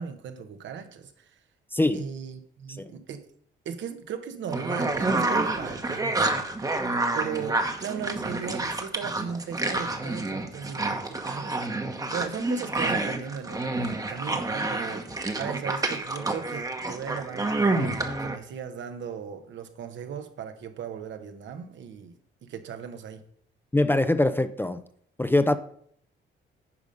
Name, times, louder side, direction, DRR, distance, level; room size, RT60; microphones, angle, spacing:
voice 1, 0.0-1.4 1.9-3.2 3.6-6.6 7.1-11.6 12.1-15.0 15.4-22.1 22.4-23.2, right 7 dB, 70° right, 1.1 m, -37 dB
voice 2, 1.7-2.0 2.8-2.9 23.7-24.8 25.2-25.6, left 2 dB, 10° left, 0.5 m, -23 dB
sound 1, 4.5-18.4, right 2 dB, 20° right, 1.0 m, -28 dB
9.7 x 5.1 x 5.3 m
cardioid pair, 90°, 20 cm